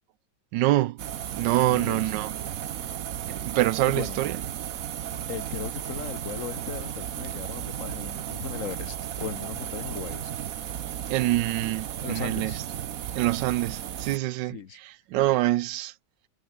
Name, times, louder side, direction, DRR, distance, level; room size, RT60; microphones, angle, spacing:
voice 1, 0.5-1.0 1.3-2.5 3.3-4.4 11.1-12.6 13.1-15.9, right 15 dB, 90° right, 1.3 m, -26 dB
sound 1, 1.0-14.2, right 10 dB, 60° right, 1.2 m, -34 dB
voice 2, 1.6-2.0 3.9-4.2 5.3-10.3 12.0-12.6 14.5-14.8, left 8 dB, 50° left, 1.4 m, -37 dB
omnidirectional pair, 1.9 m